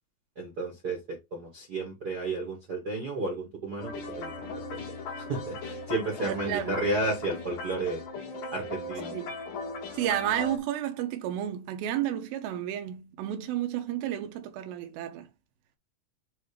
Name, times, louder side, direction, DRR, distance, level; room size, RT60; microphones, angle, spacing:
voice 1, 0.4-4.3 4.7-4.8 5.1-8.0 8.5-9.3, right 2 dB, 50° right, 1.1 m, -32 dB
sound 1, 3.8-10.6, left 2 dB, 65° left, 3.0 m, -38 dB
voice 2, 6.2-6.8 9.1-9.4 9.9-15.3, right 11 dB, 80° right, 2.7 m, -31 dB
7.3 x 2.7 x 5.0 m
omnidirectional pair, 4.2 m